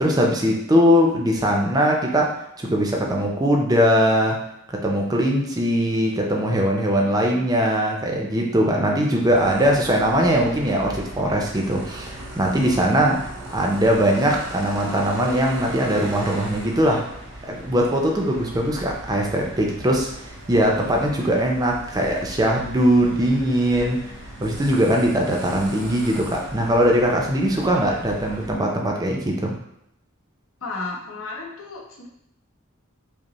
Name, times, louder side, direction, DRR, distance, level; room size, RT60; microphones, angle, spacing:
voice 1, 0.0-4.4 4.7-17.0 17.5-24.0 24.4-29.5, equal, 20° right, 0 dB, 0.5 m, -21 dB
sound 1, 9.3-28.5, right 1 dB, 80° right, 1.0 m, -38 dB
voice 2, 30.6-32.1, left 3 dB, 75° left, -2 dB, 0.9 m, -33 dB
5.0 x 2.1 x 3.0 m, 0.75 s
head